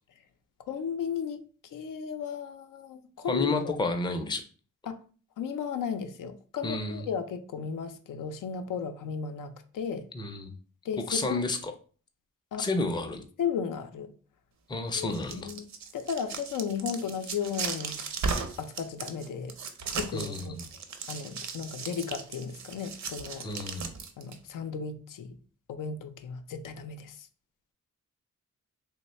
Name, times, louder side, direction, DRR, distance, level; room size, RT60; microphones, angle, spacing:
voice 1, 0.7-1.4 1.7-3.8 4.9-5.0 5.4-10.1 10.8-11.4 12.5-12.7 13.4-14.1 14.9-15.6 15.9-18.0 18.6-19.6 19.9-20.5 21.1-23.5 24.2-25.4 25.7-27.3, left 6 dB, 90° left, 0.5 m, -35 dB
voice 2, 3.3-4.4 6.6-7.1 10.1-10.5 11.1-11.7 12.6-13.2 14.7-15.5 20.1-20.6 23.4-23.9, left 3 dB, 15° left, 0.4 m, -30 dB
sound 1, 15.0-24.4, right 5 dB, 65° right, 0.6 m, -36 dB
3.1 x 2.1 x 4.1 m
wide cardioid pair, 130°, 31 cm